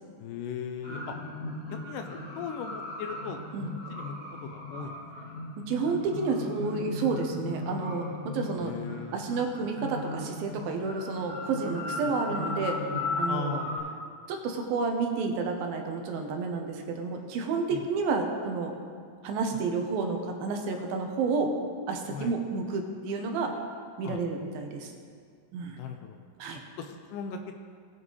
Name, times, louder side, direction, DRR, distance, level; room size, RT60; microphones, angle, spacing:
voice 1, 0.2-1.1 1.8-2.1 2.4-3.4 3.9-4.1 4.4-5.0 8.6-9.2 13.3-14.0 17.7-17.8 22.1-22.3 24.0-24.2 25.7-26.2 26.8-27.4, left 7 dB, 85° left, 5 dB, 1.9 m, -38 dB
sound 1, 0.8-13.8, left 2 dB, 40° left, 1.5 m, -36 dB
voice 2, 5.7-8.7 9.1-12.8 13.2-13.6 14.3-18.7 19.2-21.5 21.9-23.5 24.0-24.9 25.5-25.8 26.4-26.6, right 4 dB, 80° right, 3 dB, 2.8 m, -30 dB
19.5 x 7.4 x 3.2 m, 2.2 s
omnidirectional pair, 4.2 m